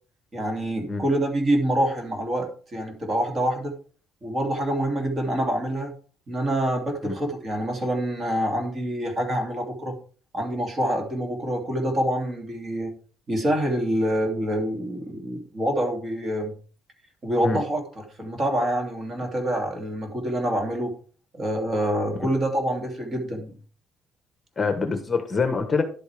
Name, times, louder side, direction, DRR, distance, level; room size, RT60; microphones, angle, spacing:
voice 1, 0.3-3.7 4.2-5.9 6.3-10.0 10.3-12.9 13.3-16.5 17.2-17.8 18.2-20.9 21.3-23.5, right 1 dB, 35° right, 3 dB, 2.8 m, -26 dB
voice 2, 24.6-25.8, left 4 dB, 25° left, 8 dB, 1.2 m, -25 dB
11.0 x 8.3 x 3.5 m, 0.39 s
cardioid pair, 125°, 0 cm